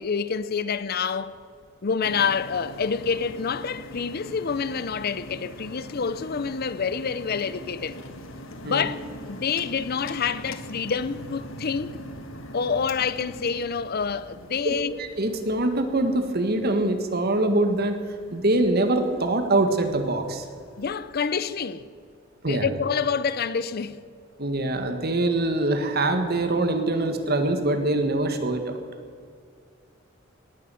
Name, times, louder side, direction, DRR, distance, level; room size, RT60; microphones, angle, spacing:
voice 1, 0.0-1.4 1.8-8.0 8.6-11.9 12.5-15.0 20.8-21.8 22.5-24.0, left 6 dB, 50° left, 0.6 m, -27 dB
sound 1, 2.0-21.2, equal, 80° left, 1.4 m, -43 dB
voice 2, 15.0-18.0 18.3-20.4 22.4-22.7 24.4-28.8, right 2 dB, 50° right, 1.7 m, -24 dB
18.5 x 9.9 x 7.7 m
head